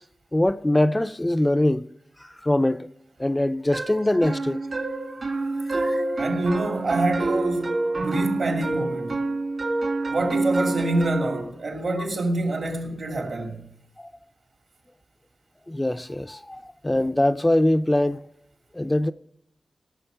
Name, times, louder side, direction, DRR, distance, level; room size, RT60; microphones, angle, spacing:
voice 1, 0.3-1.9 2.2-2.9 3.2-4.6 5.5-6.0 14.0-14.1 15.7-18.2 18.7-19.1, left 1 dB, 15° left, 0.4 m, -23 dB
sound 1, 3.7-11.4, right 2 dB, 55° right, 1.9 m, -27 dB
voice 2, 6.2-9.2 10.1-13.6, right 2 dB, 70° right, 2.6 m, -26 dB
17.5 x 7.2 x 5.6 m
wide cardioid pair, 80°, 0 cm